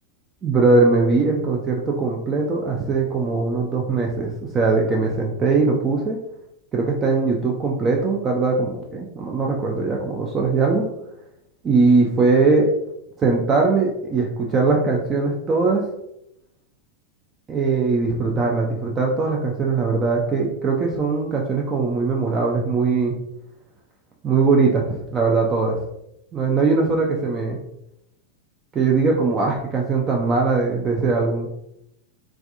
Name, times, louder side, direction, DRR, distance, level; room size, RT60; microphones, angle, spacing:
voice 1, 0.4-6.2 6.7-10.9 11.6-12.7 13.2-15.8 17.5-23.2 24.2-25.8 26.3-27.6 28.7-31.5, right 4 dB, 25° right, -1 dB, 0.4 m, -20 dB
3.3 x 2.4 x 2.6 m, 0.81 s
figure-of-eight pair, 90°, 0 cm